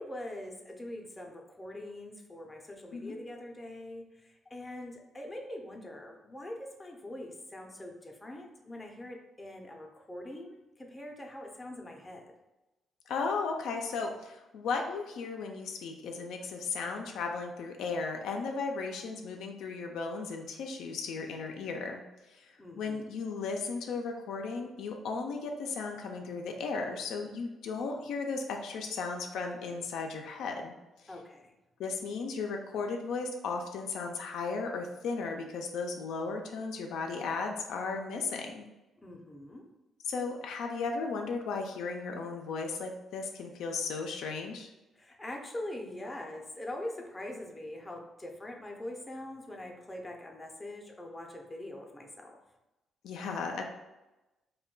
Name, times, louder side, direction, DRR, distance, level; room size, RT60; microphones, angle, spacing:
voice 1, 0.0-12.3 22.6-23.2 31.1-31.5 39.0-39.7 45.0-52.4, left 1 dB, 15° left, 1 dB, 0.5 m, -43 dB
voice 2, 13.1-22.0 22.3-22.5 22.8-30.7 31.8-38.7 40.0-44.7 53.0-53.6, left 4 dB, 80° left, 3 dB, 0.3 m, -35 dB
2.2 x 2.1 x 3.7 m, 1.0 s
cardioid pair, 90°, 0 cm